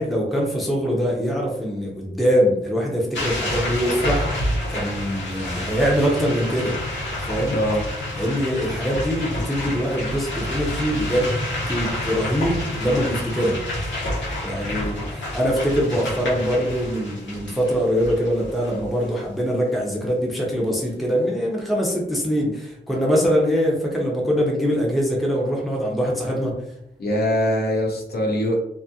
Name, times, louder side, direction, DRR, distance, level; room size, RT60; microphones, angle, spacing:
voice 1, 0.0-6.8 7.2-7.6 8.1-13.6 14.4-26.6, equal, ahead, -2 dB, 0.5 m, -23 dB
sound 1, 3.1-19.1, left 1 dB, 75° left, 1.1 m, -29 dB
voice 2, 7.5-7.9 27.0-28.5, equal, 55° left, -1 dB, 0.7 m, -22 dB
2.6 x 2.4 x 2.7 m, 0.80 s
wide cardioid pair, 170°, 19 cm